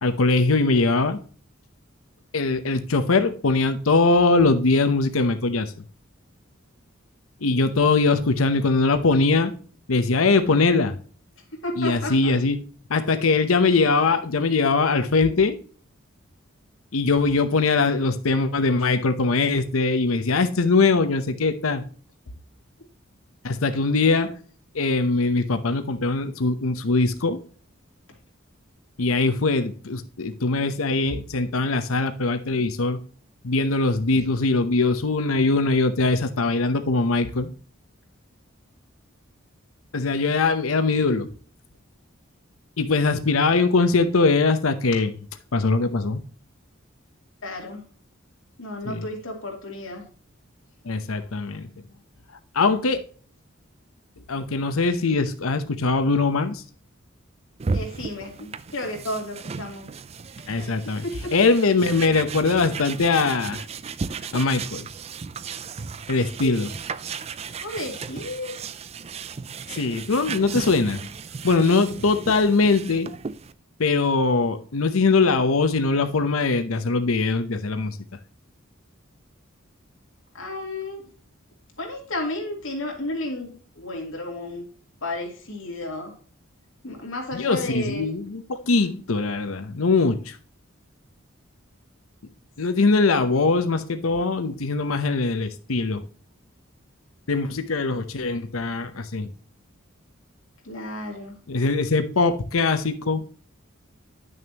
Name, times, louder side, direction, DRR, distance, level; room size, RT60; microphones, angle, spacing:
voice 1, 0.0-1.2 2.3-5.7 7.4-9.5 9.9-11.0 11.8-12.6 12.9-15.6 16.9-21.8 23.4-24.4 24.7-27.4 29.0-33.0 33.4-37.5 39.9-41.3 42.8-45.1 45.5-46.2 48.8-49.1 50.8-51.7 52.5-53.0 54.3-56.6 60.5-61.0 61.3-63.6 64.3-64.9 66.1-66.7 69.7-71.1 71.4-73.1 73.8-78.0 87.3-90.4 92.6-96.0 97.3-99.3 101.5-103.2, left 3 dB, 85° left, 0.8 m, -21 dB
voice 2, 11.6-12.3 47.4-47.8 48.6-50.0 57.7-59.9 60.6-60.7 61.0-61.3 66.4-66.6 67.6-68.7 80.3-81.0 81.8-84.6 85.0-86.1 86.8-88.1 100.6-101.4, left 1 dB, 70° left, 2.8 m, -32 dB
sound 1, 57.6-73.5, right 5 dB, 30° right, 0.4 m, -35 dB
10.5 x 6.5 x 2.9 m
head